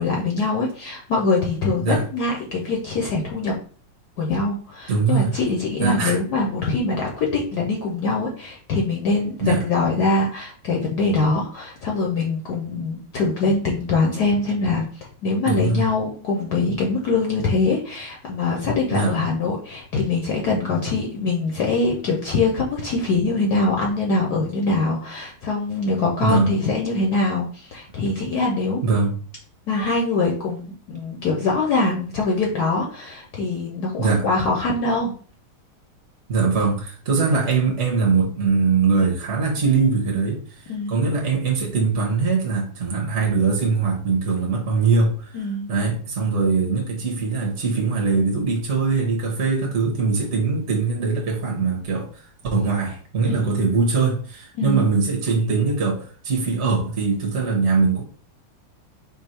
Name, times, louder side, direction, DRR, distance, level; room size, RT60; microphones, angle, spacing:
voice 1, 0.0-3.5 4.2-14.9 15.2-28.8 29.7-35.1 40.7-41.0 45.3-45.7 53.2-53.6 54.6-54.9, left 3 dB, 65° left, 1.1 m, -23 dB
voice 2, 4.9-5.3 5.8-6.2 9.4-9.6 15.5-15.9 18.9-19.1 26.2-26.5 28.8-29.2 34.0-34.3 36.3-45.4 45.7-52.1 52.5-58.0, right 4 dB, 45° right, 1.0 m, -21 dB
4.5 x 2.7 x 4.3 m
omnidirectional pair, 2.3 m